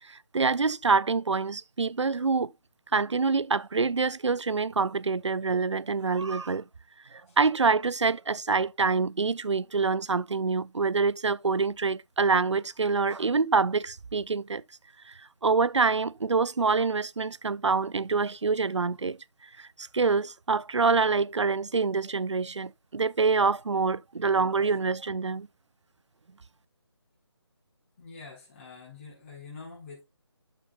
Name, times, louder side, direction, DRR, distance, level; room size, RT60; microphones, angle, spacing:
voice 1, 0.3-2.5 2.9-6.6 7.1-14.6 15.4-19.2 19.6-19.7 19.9-25.5, right 4 dB, 80° right, 0.5 m, -26 dB
voice 2, 28.0-30.0, left 4 dB, 25° left, 4.3 m, -45 dB
11.0 x 6.6 x 2.4 m
figure-of-eight pair, 155°, 15 cm